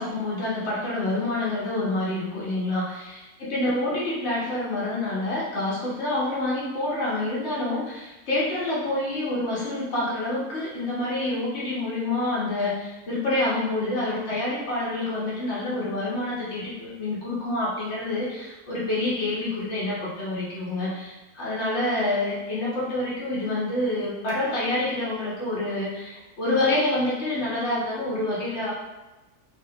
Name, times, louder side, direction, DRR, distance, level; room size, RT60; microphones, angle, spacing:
voice 1, 0.0-28.7, left 2 dB, 45° left, -7 dB, 1.2 m, -27 dB
2.8 x 2.7 x 2.7 m, 1.1 s
omnidirectional pair, 1.8 m